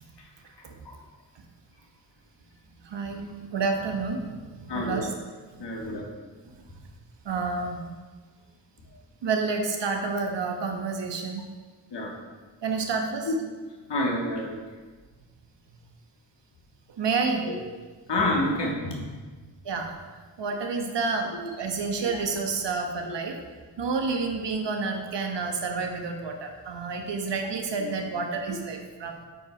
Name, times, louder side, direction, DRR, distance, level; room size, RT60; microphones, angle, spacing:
voice 1, 2.8-5.1 5.6-5.9 6.5-6.6 7.2-7.8 9.2-11.5 12.6-13.3 17.0-17.5 19.6-19.9 20.4-23.4 23.8-29.2, right 4 dB, 65° right, 4 dB, 1.2 m, -29 dB
voice 2, 4.7-5.1 5.6-6.0 11.9-12.1 13.3-13.4 13.9-14.6 17.5-17.6 18.1-19.0 21.3-21.5 23.1-23.2 27.8-27.9, left 1 dB, 60° left, -1 dB, 2.0 m, -28 dB
8.3 x 4.8 x 4.8 m, 1.4 s
cardioid pair, 50°, 46 cm